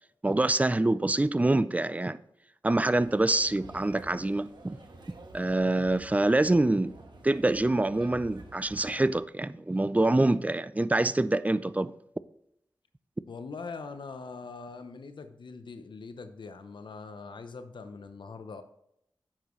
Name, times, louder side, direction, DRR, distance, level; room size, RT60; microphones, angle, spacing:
voice 1, 0.2-2.2 2.6-4.8 5.3-6.9 7.2-11.9, right 2 dB, 20° right, 0.4 m, -25 dB
sound 1, 2.8-9.1, right 2 dB, 75° right, 1.3 m, -50 dB
voice 2, 13.3-18.6, left 4 dB, 90° left, 0.8 m, -42 dB
9.8 x 7.3 x 3.1 m
wide cardioid pair, 65°, 8 cm